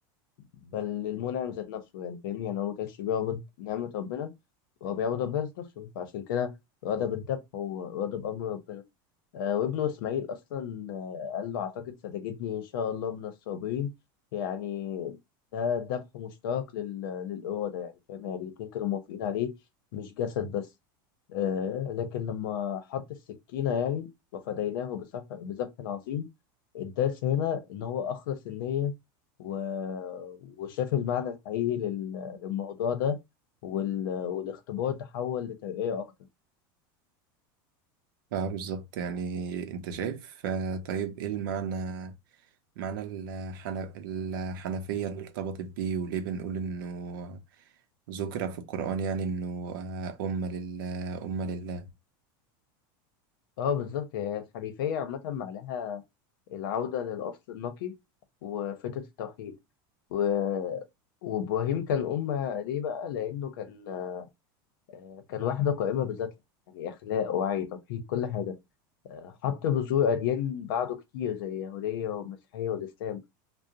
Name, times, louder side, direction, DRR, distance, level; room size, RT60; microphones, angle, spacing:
voice 1, 0.6-4.3 4.8-6.5 6.8-8.8 9.3-13.9 14.3-15.2 15.5-19.5 19.9-20.6 21.3-23.0 23.5-26.2 26.7-28.9 29.4-33.2 33.6-36.1 53.6-56.0 56.5-57.9 58.4-59.5 60.1-60.9 61.2-64.3 64.9-66.3 66.7-68.5 69.1-73.2, left 8 dB, 75° left, 0.7 m, -31 dB
voice 2, 38.3-42.1 42.8-47.4 48.1-51.9, right 5 dB, 75° right, 0.6 m, -33 dB
2.4 x 2.1 x 2.7 m
supercardioid pair, 165°, 11 cm